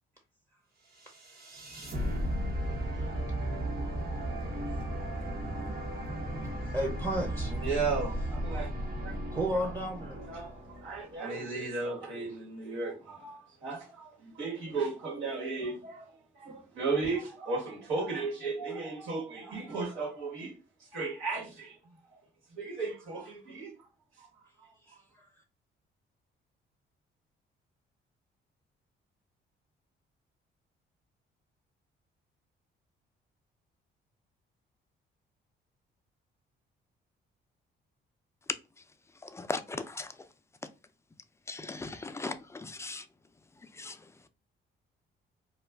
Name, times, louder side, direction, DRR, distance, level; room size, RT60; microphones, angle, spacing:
sound 1, 1.0-11.2, right 1 dB, 50° right, 0.9 m, -35 dB
voice 1, 6.7-7.6 9.3-10.2 24.9-25.3, right 1 dB, 15° right, 0.7 m, -33 dB
voice 2, 7.5-8.7 9.0-9.1 9.5-9.7 10.1-16.1 16.3-20.6 20.9-21.8 22.5-23.7 24.2-24.3 24.6-24.7, right 4 dB, 85° right, 1.3 m, -35 dB
voice 3, 39.2-40.1 41.5-43.1 43.7-44.0, left 3 dB, 15° left, 0.3 m, -38 dB
2.3 x 2.3 x 3.3 m
cardioid pair, 90°, 20 cm